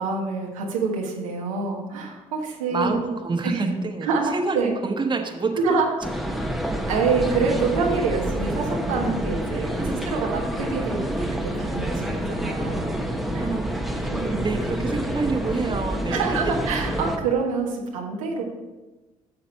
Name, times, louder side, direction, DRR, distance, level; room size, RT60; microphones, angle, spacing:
voice 1, 0.0-3.0 3.4-3.6 4.0-4.8 5.6-5.9 6.9-11.3 11.5-13.0 13.3-13.5 14.1-14.4 16.1-18.4, right 4 dB, 85° right, -1 dB, 1.4 m, -26 dB
voice 2, 2.7-4.6 4.8-5.8 9.5-10.0 13.4-13.7 14.0-16.4, right 3 dB, 25° right, 4 dB, 1.4 m, -28 dB
sound 1, 6.0-17.2, equal, ahead, 1.1 m, -28 dB
9.3 x 6.7 x 4.5 m, 1.1 s
hypercardioid pair, 55°, 17 cm